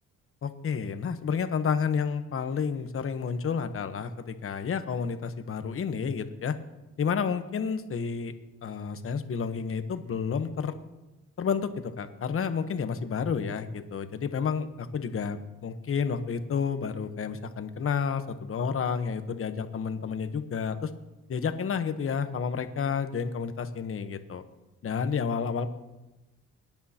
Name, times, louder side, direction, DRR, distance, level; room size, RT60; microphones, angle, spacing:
voice 1, 0.4-6.5 7.0-8.3 8.6-10.7 11.4-20.9 21.3-24.4 24.8-25.7, left 6 dB, 45° left, 9 dB, 1.1 m, -30 dB
23.0 x 10.5 x 2.9 m, 1.0 s
cardioid pair, 90°, 30 cm